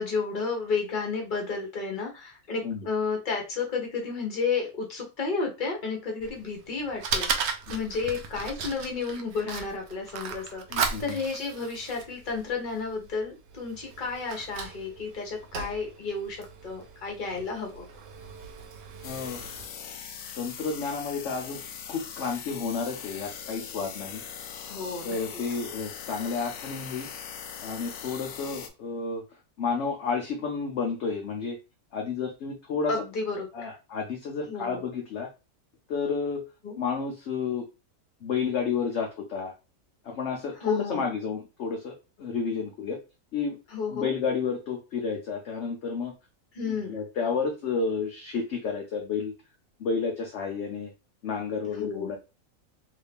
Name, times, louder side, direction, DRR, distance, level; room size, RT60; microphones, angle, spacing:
voice 1, 0.0-17.8 24.7-25.2 32.9-33.7 34.5-34.8 36.6-36.8 40.6-41.1 43.7-44.1 46.5-47.0 51.7-52.1, left 4 dB, 35° left, 1 dB, 1.1 m, -32 dB
Fire, 6.2-19.6, right 5 dB, 65° right, 0.7 m, -37 dB
voice 2, 10.7-11.0 19.0-19.5 20.4-21.6 21.9-24.2 25.0-27.1 27.6-29.2 29.6-31.6 31.9-32.9 33.5-35.3 35.9-36.4 36.8-37.6 38.2-39.5 40.0-43.0 43.3-43.6 43.9-46.1 46.6-49.3 49.8-50.9 51.2-52.2, left 5 dB, 60° left, 1 dB, 0.9 m, -31 dB
sound 1, 19.0-28.7, left 7 dB, 80° left, 1.1 m, -41 dB
3.2 x 2.7 x 3.4 m, 0.28 s
omnidirectional pair, 1.6 m